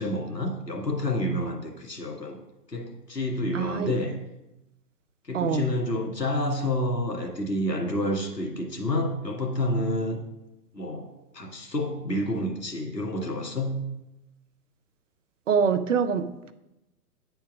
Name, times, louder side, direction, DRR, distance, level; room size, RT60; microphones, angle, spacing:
voice 1, 0.0-2.4 2.7-4.2 5.2-10.2 10.7-13.8, left 1 dB, 85° left, 1 dB, 1.9 m, -29 dB
voice 2, 3.5-3.9 5.3-5.7 15.5-16.5, right 6 dB, 50° right, 11 dB, 0.7 m, -25 dB
9.2 x 4.6 x 5.4 m, 0.93 s
figure-of-eight pair, 125°, 48 cm